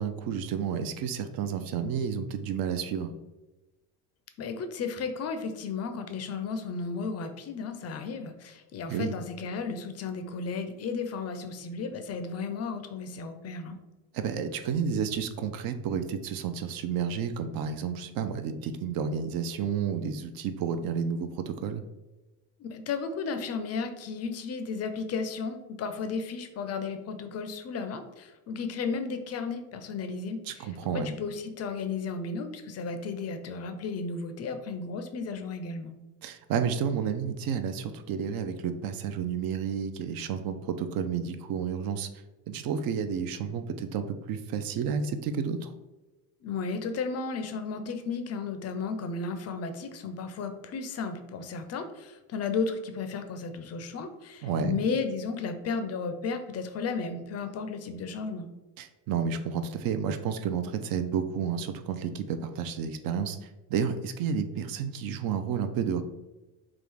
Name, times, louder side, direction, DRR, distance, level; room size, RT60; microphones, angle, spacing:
voice 1, 0.0-3.1 8.9-9.1 14.1-21.8 30.5-31.1 36.2-42.1 42.5-45.7 54.4-54.8 58.8-66.0, right 7 dB, 50° right, 9 dB, 0.5 m, -31 dB
voice 2, 4.4-13.8 22.6-30.7 30.9-35.9 46.4-58.5, left 4 dB, 35° left, 8 dB, 0.5 m, -34 dB
3.7 x 2.4 x 3.3 m, 1.1 s
supercardioid pair, 80°, 47 cm